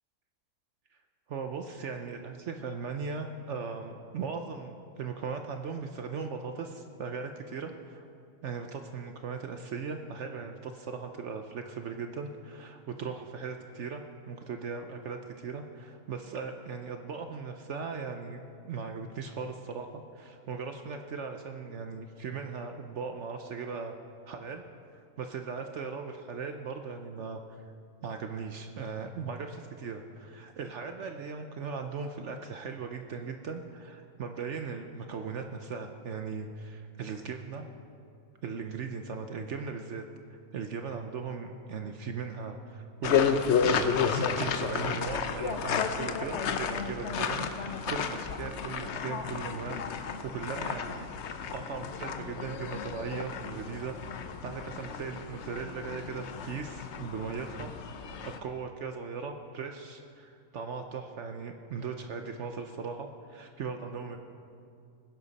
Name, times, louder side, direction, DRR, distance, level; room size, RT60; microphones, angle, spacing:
voice 1, 1.3-8.1 8.4-18.4 18.6-23.9 24.3-24.6 24.9-27.4 28.0-37.7 38.4-40.0 40.3-43.3 43.6-51.1 51.5-57.7 58.2-64.2, right 5 dB, 60° right, 5 dB, 0.9 m, -38 dB
sound 1, 43.0-58.4, left 6 dB, 60° left, 0.8 m, -32 dB
19.5 x 10.5 x 4.1 m, 2.5 s
omnidirectional pair, 1.6 m